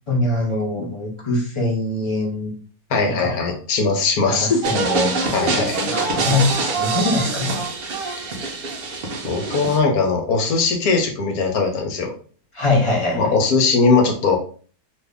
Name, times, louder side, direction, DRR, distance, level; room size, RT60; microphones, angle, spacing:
voice 1, 0.1-2.5 3.1-3.3 4.2-7.6 12.5-13.3, left 2 dB, 40° left, -3 dB, 0.4 m, -23 dB
voice 2, 2.9-4.6 5.3-5.8 8.0-8.2 9.2-12.1 13.1-14.4, left 4 dB, 75° left, 3 dB, 1.2 m, -20 dB
sound 1, 4.6-9.8, right 3 dB, 65° right, 0.5 m, -25 dB
2.7 x 2.6 x 3.4 m, 0.43 s
omnidirectional pair, 1.6 m